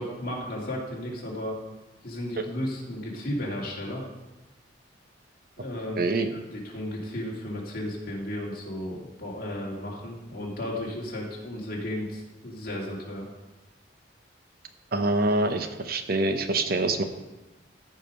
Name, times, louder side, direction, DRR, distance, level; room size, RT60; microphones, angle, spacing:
voice 1, 0.0-1.6 2.0-4.0 5.6-6.1 6.3-13.3, left 1 dB, 50° left, -3 dB, 2.5 m, -34 dB
voice 2, 6.0-6.3 14.9-17.0, right 2 dB, 55° right, 7 dB, 0.8 m, -25 dB
14.5 x 5.0 x 5.4 m, 1.1 s
head